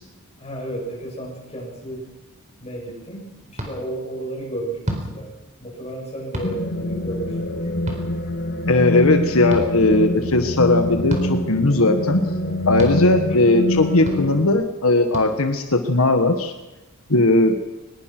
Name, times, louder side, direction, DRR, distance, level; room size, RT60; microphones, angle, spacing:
voice 1, 0.4-2.1 2.6-5.3 5.6-7.7, right 1 dB, 30° left, -2 dB, 7.6 m, -33 dB
sound 1, 3.6-3.7 4.8-5.1 6.3-6.5 7.9-8.0 9.5-9.6 11.1-11.3 12.8-13.0 14.1-14.2 15.1-15.3, equal, 35° right, 4.3 m, -28 dB
sound 2, 6.4-14.5, left 1 dB, 50° left, 2.3 m, -25 dB
voice 2, 8.7-12.2 12.7-16.5 17.1-17.6, left 2 dB, 75° left, 7 dB, 1.5 m, -18 dB
23.5 x 20.5 x 6.1 m, 1.0 s
head